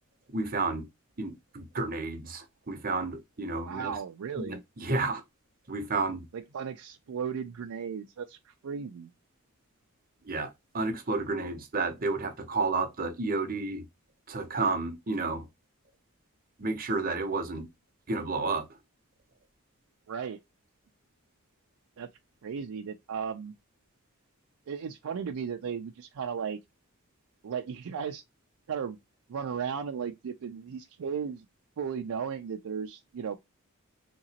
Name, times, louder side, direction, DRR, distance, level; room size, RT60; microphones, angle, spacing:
voice 1, 0.3-0.8 1.2-4.0 4.4-5.2 5.7-6.2 10.2-13.8 14.3-15.4 16.6-17.7 18.1-18.7, right 3 dB, 40° right, 0.8 m, -31 dB
voice 2, 3.7-4.6 6.3-9.1 20.1-20.4 22.0-22.1 22.4-23.5 24.7-26.6 27.4-28.2 28.7-29.0 29.3-31.5 31.8-33.4, right 6 dB, 75° right, 0.4 m, -35 dB
3.8 x 2.9 x 2.8 m
head